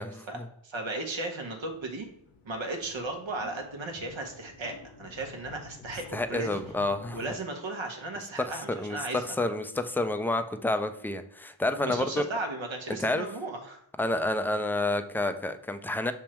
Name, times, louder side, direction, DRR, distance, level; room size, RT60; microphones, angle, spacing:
voice 1, 0.0-0.5 6.1-7.2 8.5-12.2 13.0-13.3 14.0-16.1, left 2 dB, 5° left, 9 dB, 0.4 m, -29 dB
voice 2, 0.6-2.1 2.4-6.6 7.1-9.2 11.8-13.8, right 2 dB, 80° right, 3 dB, 1.3 m, -35 dB
sound 1, 1.7-7.3, left 4 dB, 60° left, 0.8 m, -51 dB
6.1 x 3.6 x 4.4 m, 0.73 s
wide cardioid pair, 75°, 46 cm